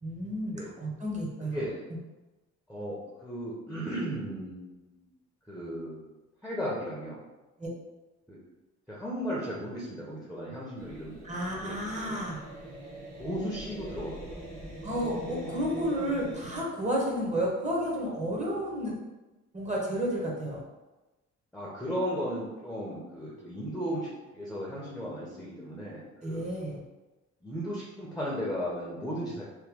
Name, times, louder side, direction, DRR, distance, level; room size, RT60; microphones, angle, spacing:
voice 1, 0.0-1.7 7.6-7.7 11.2-12.4 14.8-18.9 19.5-20.6 26.2-26.8, equal, 25° right, -3 dB, 1.0 m, -31 dB
voice 2, 1.5-1.8 2.7-5.0 5.5-7.2 8.3-8.4 8.9-11.2 11.6-12.1 13.2-14.4 21.5-24.1 24.3-26.5 27.4-29.4, equal, ahead, -5 dB, 0.8 m, -35 dB
sound 1, 10.8-16.6, right 1 dB, 85° right, 1.1 m, -43 dB
3.1 x 2.2 x 3.6 m, 1.1 s
cardioid pair, 90°, 30 cm